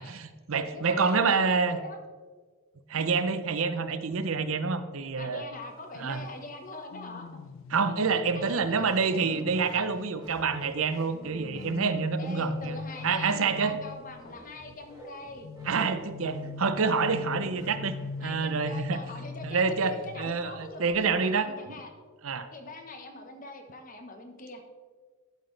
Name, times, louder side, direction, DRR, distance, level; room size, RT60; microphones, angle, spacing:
voice 1, 0.0-1.8 2.9-5.4 6.0-6.2 7.7-12.8 13.0-13.8 15.6-17.9 18.2-19.0 19.4-21.5 22.2-22.5, right 5 dB, 80° right, 11 dB, 0.6 m, -27 dB
voice 2, 0.7-2.0 2.9-3.1 5.2-7.3 8.3-9.2 12.2-15.5 18.2-21.9 22.5-24.6, left 2 dB, 40° left, 5 dB, 1.1 m, -43 dB
sound 1, 6.9-10.5 11.1-14.4 15.4-20.6 20.9-21.2, left 4 dB, 70° left, 0.4 m, -42 dB
sound 2, 8.5-18.2, right 1 dB, 20° right, 2.1 m, -49 dB
12.0 x 8.0 x 3.3 m, 1.4 s
head